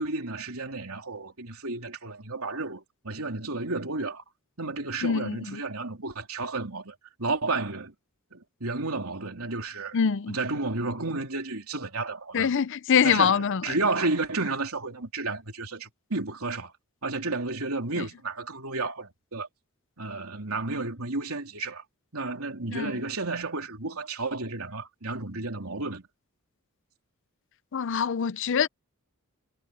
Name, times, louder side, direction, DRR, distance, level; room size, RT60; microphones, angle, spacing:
voice 1, 0.0-4.2 4.6-7.9 8.3-10.0 10.3-12.5 13.0-16.7 17.0-19.5 20.0-21.8 22.1-26.0, right 3 dB, 70° right, 3.6 m, -32 dB
voice 2, 5.0-5.6 9.9-10.4 12.3-13.6 22.7-22.9 27.7-28.7, left 7 dB, 55° left, 0.5 m, -24 dB
head